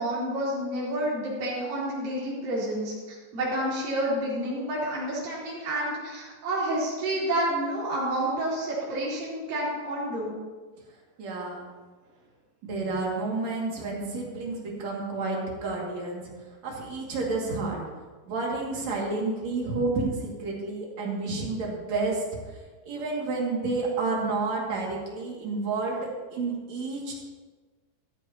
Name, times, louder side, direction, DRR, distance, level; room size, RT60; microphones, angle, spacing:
voice 1, 0.0-10.3, right 1 dB, 70° right, -9 dB, 5.3 m, -29 dB
voice 2, 11.2-11.7 12.6-17.8 18.3-27.1, right 3 dB, 50° right, -2 dB, 3.2 m, -30 dB
14.0 x 13.5 x 2.9 m, 1.3 s
omnidirectional pair, 4.2 m